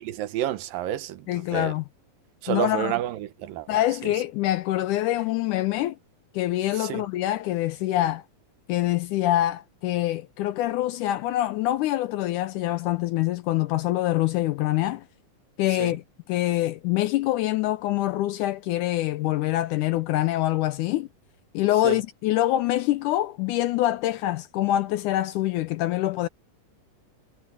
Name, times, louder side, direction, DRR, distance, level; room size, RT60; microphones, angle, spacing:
voice 1, 0.0-1.3 1.5-1.7 2.4-3.7 6.8-7.0 15.8-15.9 21.8-22.0, right 12 dB, 80° right, 2.7 m, -29 dB
voice 2, 1.3-1.9 2.5-2.9 3.7-6.0 6.3-8.2 8.7-15.0 15.6-16.0 16.3-21.1 21.5-26.3, left 15 dB, 80° left, 1.9 m, -25 dB
omnidirectional pair, 4.0 m